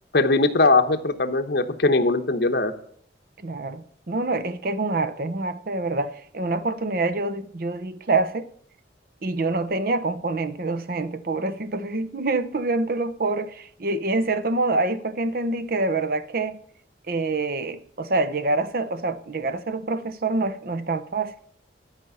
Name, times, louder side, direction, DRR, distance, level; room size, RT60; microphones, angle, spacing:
voice 1, 0.1-2.7, left 3 dB, 60° left, 1.0 m, -20 dB
voice 2, 3.4-8.5 9.2-16.6 17.1-21.3, right 3 dB, 55° right, 0.7 m, -26 dB
11.5 x 5.2 x 6.9 m
head